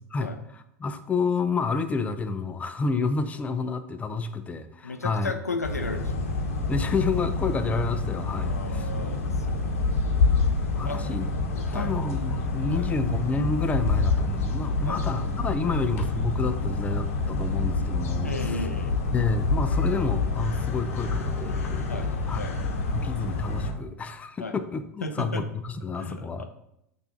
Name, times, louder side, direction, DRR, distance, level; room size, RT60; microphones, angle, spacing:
voice 1, 0.1-5.3 6.7-8.9 10.8-11.3 11.7-18.7 19.1-22.4 22.9-26.5, left 4 dB, 15° left, 9 dB, 0.6 m, -29 dB
voice 2, 4.8-6.2 8.4-10.0 10.8-11.0 11.6-11.9 12.7-12.9 14.8-15.0 18.2-19.0 21.9-22.1 22.4-22.6 24.4-24.5 25.0-25.4 26.0-26.5, left 3 dB, 85° left, 6 dB, 0.7 m, -35 dB
sound 1, 5.6-23.7, left 3 dB, 65° left, 1.0 m, -27 dB
6.8 x 2.7 x 5.7 m, 0.80 s
figure-of-eight pair, 85°, 8 cm